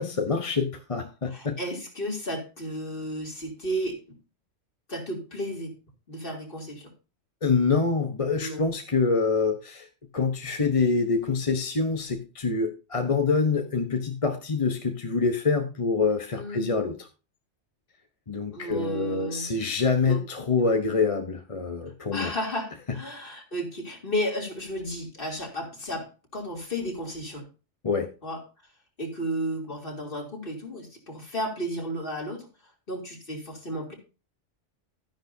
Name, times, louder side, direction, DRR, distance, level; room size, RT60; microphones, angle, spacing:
voice 1, 0.0-1.5 7.4-9.9 10.1-17.1 18.3-22.3 27.8-28.1, left 4 dB, 30° left, 5 dB, 1.0 m, -26 dB
voice 2, 1.3-4.0 4.9-5.7 6.1-6.9 8.4-8.6 16.3-16.7 18.5-19.5 20.1-20.2 22.1-26.1 26.3-27.5 28.2-28.4 29.0-32.5 32.9-33.9, equal, 50° left, 0 dB, 3.3 m, -33 dB
12.5 x 10.5 x 2.7 m, 0.33 s
omnidirectional pair, 1.2 m